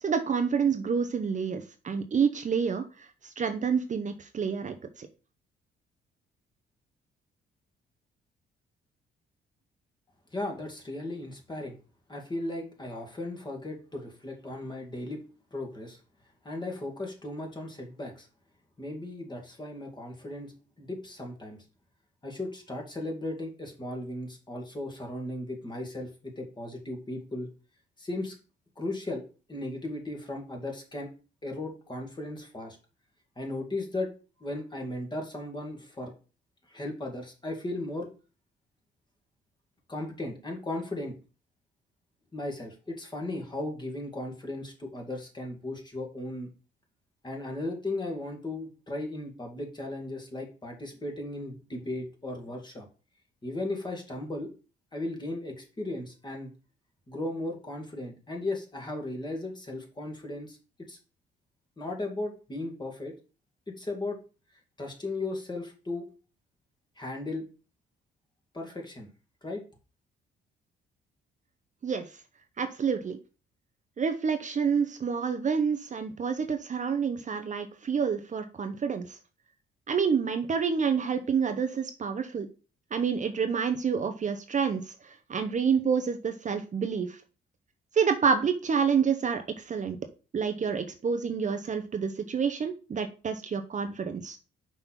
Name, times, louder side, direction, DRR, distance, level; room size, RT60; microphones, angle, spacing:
voice 1, 0.0-5.1 71.8-72.0 72.6-73.2 74.0-79.2 79.9-82.5 82.9-87.2 87.9-90.0 90.3-94.4, right 6 dB, 40° right, 7 dB, 0.8 m, -28 dB
voice 2, 10.3-11.8 12.1-15.2 15.5-16.0 16.4-18.3 18.8-21.6 22.2-27.5 28.0-28.3 28.8-29.2 29.5-31.1 31.4-32.8 33.4-34.1 34.4-36.1 36.7-38.1 39.9-41.1 42.3-46.5 47.2-52.9 53.4-54.5 54.9-56.5 57.1-60.6 60.9-61.0 61.8-63.1 63.7-64.2 64.8-66.0 67.0-67.4 68.5-69.1 69.4-69.6, left 2 dB, 20° left, 1 dB, 2.2 m, -36 dB
5.4 x 4.3 x 5.9 m, 0.34 s
cardioid pair, 90°, 20 cm